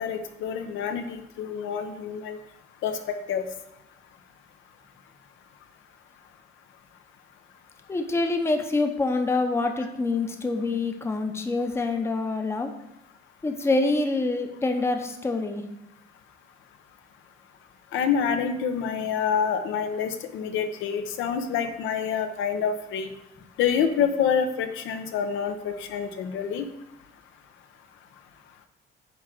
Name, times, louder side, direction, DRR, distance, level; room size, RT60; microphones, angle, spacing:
voice 1, 0.0-2.4 2.8-3.5 17.9-23.1 23.6-26.6, left 7 dB, 85° left, 7 dB, 0.9 m, -27 dB
voice 2, 7.9-12.7 13.4-15.6, left 3 dB, 15° left, 5 dB, 0.7 m, -26 dB
9.2 x 3.8 x 6.3 m, 0.88 s
cardioid pair, 165°, 20 cm